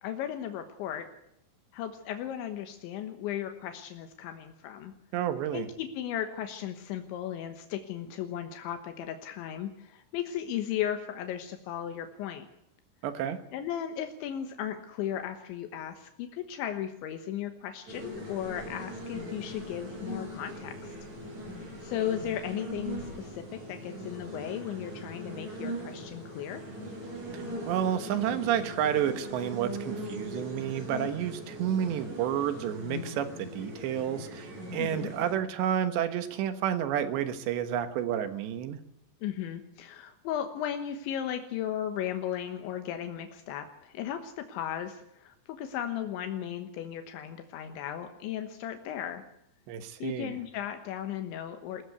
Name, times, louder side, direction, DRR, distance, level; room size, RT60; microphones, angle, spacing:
voice 1, 0.0-1.1 1.7-4.9 5.5-12.5 13.5-21.0 21.8-26.6 34.8-35.1 39.2-49.2 50.0-51.8, left 10 dB, 80° left, 7 dB, 3.5 m, -36 dB
voice 2, 5.1-5.7 13.0-13.4 27.3-38.8 49.7-50.4, right 10 dB, 70° right, 11 dB, 3.5 m, -30 dB
sound 1, 17.9-35.4, equal, 40° right, 8.3 m, -40 dB
22.0 x 16.5 x 8.1 m, 0.78 s
omnidirectional pair, 5.4 m